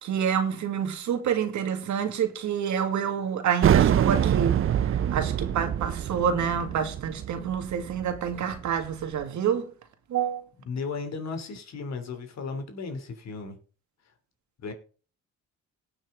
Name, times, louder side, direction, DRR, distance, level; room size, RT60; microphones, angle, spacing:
voice 1, 0.0-4.5 5.1-9.7 10.1-10.4, right 8 dB, 70° right, 2.2 m, -27 dB
sound 1, 3.6-8.9, right 10 dB, 45° right, 0.6 m, -25 dB
voice 2, 10.6-13.6 14.6-14.7, left 4 dB, 60° left, 3.0 m, -35 dB
18.5 x 6.2 x 3.8 m
cardioid pair, 90°, 30 cm